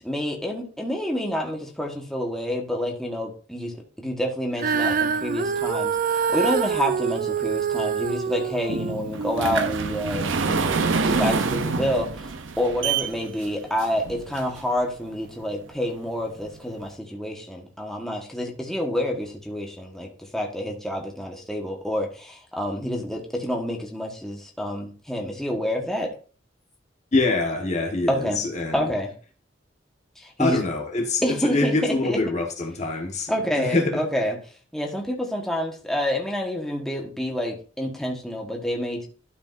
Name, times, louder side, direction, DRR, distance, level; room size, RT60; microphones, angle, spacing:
voice 1, 0.0-10.8 11.1-26.1 28.1-28.4 28.7-29.1 30.2-30.6 31.2-31.9 33.3-34.4 34.7-39.1, equal, ahead, 0 dB, 1.3 m, -28 dB
Female singing, 4.6-10.9 11.6-11.7, right 6 dB, 45° right, 0.4 m, -26 dB
sound 1, 8.7-14.8 15.4-15.5 16.0-16.1 16.4-16.5, right 4 dB, 85° right, 0.7 m, -27 dB
voice 2, 27.1-28.9 30.4-34.0, left 2 dB, 40° left, 2 dB, 1.3 m, -25 dB
12.0 x 5.1 x 2.6 m, 0.39 s
head